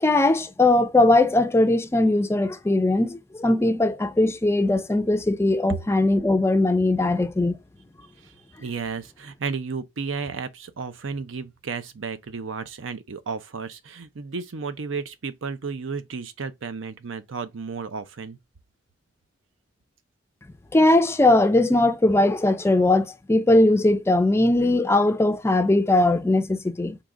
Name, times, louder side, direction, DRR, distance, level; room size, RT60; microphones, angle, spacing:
voice 1, 0.0-7.6 20.7-27.0, left 2 dB, 15° left, 0.4 m, -20 dB
voice 2, 8.6-18.4, right 5 dB, 80° right, 0.6 m, -33 dB
3.8 x 2.8 x 4.8 m
head